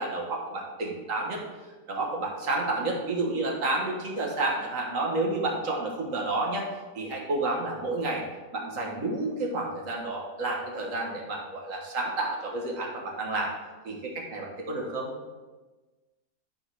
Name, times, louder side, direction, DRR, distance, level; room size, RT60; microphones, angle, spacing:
voice 1, 0.0-1.4 1.9-6.7 6.9-8.2 8.5-13.5 13.8-15.1, right 2 dB, 55° right, -1 dB, 1.7 m, -30 dB
10.0 x 3.7 x 4.7 m, 1.2 s
omnidirectional pair, 1.8 m